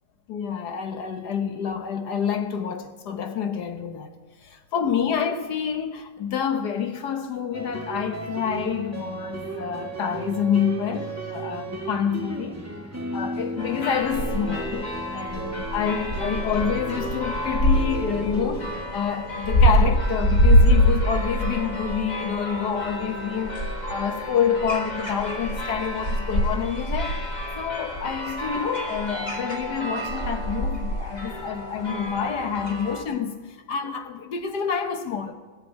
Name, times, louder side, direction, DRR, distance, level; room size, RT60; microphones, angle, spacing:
voice 1, 0.3-4.1 4.4-12.6 13.1-27.2 27.6-35.3, left 7 dB, 70° left, 1.6 m, -28 dB
sound 1, 7.5-18.9, right 2 dB, 10° right, 2.0 m, -35 dB
sound 2, 13.6-33.0, equal, 25° left, 1.7 m, -25 dB
18.0 x 6.8 x 9.0 m
omnidirectional pair, 1.9 m